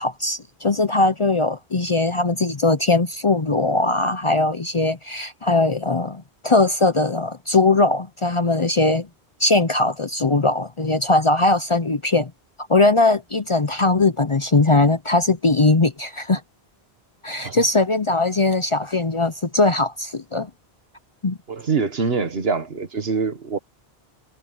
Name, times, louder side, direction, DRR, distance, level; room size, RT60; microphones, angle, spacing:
voice 1, 0.0-9.1 9.4-12.3 12.7-16.4 17.2-20.5 21.2-21.4, left 2 dB, 35° left, 0.7 m, -20 dB
voice 2, 21.5-23.6, right 5 dB, 70° right, 1.7 m, -24 dB
omnidirectional pair, 1.1 m